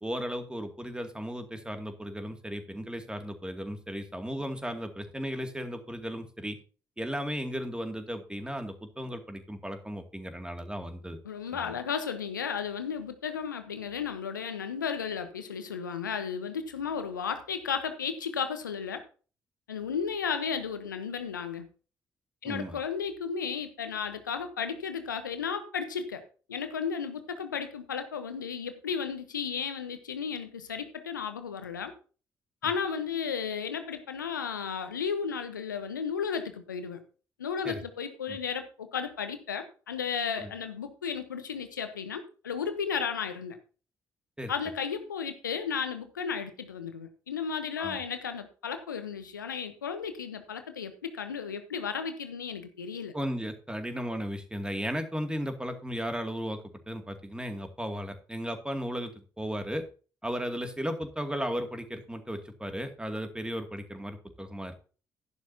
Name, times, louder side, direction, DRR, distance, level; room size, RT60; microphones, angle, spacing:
voice 1, 0.0-6.6 7.0-11.2 11.5-11.7 22.4-22.8 37.6-37.8 38.3-38.4 40.4-40.5 44.4-44.5 47.8-48.0 53.1-56.6 56.9-59.8 60.2-64.9, equal, 10° right, 6 dB, 2.4 m, -35 dB
voice 2, 11.2-19.0 19.7-21.7 22.4-26.2 26.5-31.9 32.6-37.0 37.4-43.6 44.5-53.1, left 6 dB, 85° left, 10 dB, 1.0 m, -34 dB
11.5 x 11.5 x 2.8 m, 0.37 s
figure-of-eight pair, 40°, 10 cm